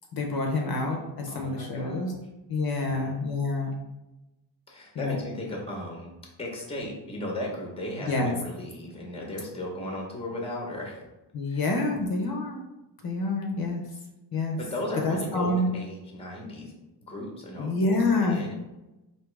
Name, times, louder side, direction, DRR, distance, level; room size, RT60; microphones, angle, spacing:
voice 1, 0.1-2.1 2.5-3.8 4.9-5.2 8.0-8.3 11.3-12.6 13.0-13.8 14.3-14.6 15.0-15.7 17.6-18.4, left 2 dB, 50° left, 1 dB, 0.7 m, -27 dB
voice 2, 1.3-2.2 2.8-3.2 4.7-6.1 6.4-11.1 11.5-11.6 14.5-16.7 17.1-18.5, left 1 dB, 15° left, 0 dB, 0.7 m, -36 dB
4.8 x 2.8 x 3.2 m, 1.0 s
wide cardioid pair, 170°, 46 cm